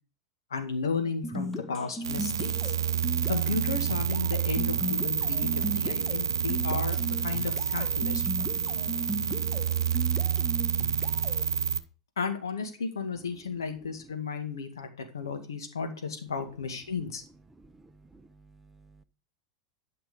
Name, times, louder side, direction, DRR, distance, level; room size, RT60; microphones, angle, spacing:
voice 1, 0.5-2.7 3.3-8.5 12.2-17.2, left 5 dB, 75° left, 6 dB, 2.0 m, -34 dB
sound 1, 1.2-11.5, equal, 15° left, 1.3 m, -37 dB
sound 2, 2.0-11.8, right 8 dB, 75° right, 0.7 m, -28 dB
voice 2, 13.7-14.1 17.6-19.0, right 2 dB, 15° right, 11 dB, 0.8 m, -56 dB
12.0 x 6.0 x 5.4 m, 0.35 s
figure-of-eight pair, 85°, 2 cm